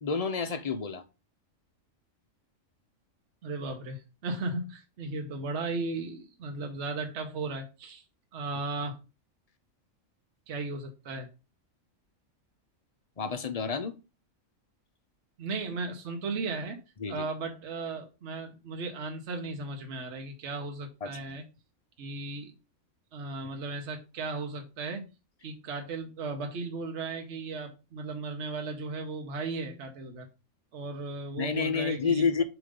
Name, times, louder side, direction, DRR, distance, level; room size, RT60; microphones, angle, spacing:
voice 1, 0.0-1.0 13.2-13.9 17.0-17.2 21.0-21.4 31.4-32.4, left 5 dB, 45° left, 0.5 m, -29 dB
voice 2, 3.4-8.0 8.3-9.0 10.5-11.3 15.4-16.8 17.1-21.4 22.0-22.5 23.1-25.0 25.4-30.3 30.7-32.3, right 3 dB, 60° right, 1.2 m, -36 dB
6.9 x 3.1 x 5.1 m
omnidirectional pair, 1.4 m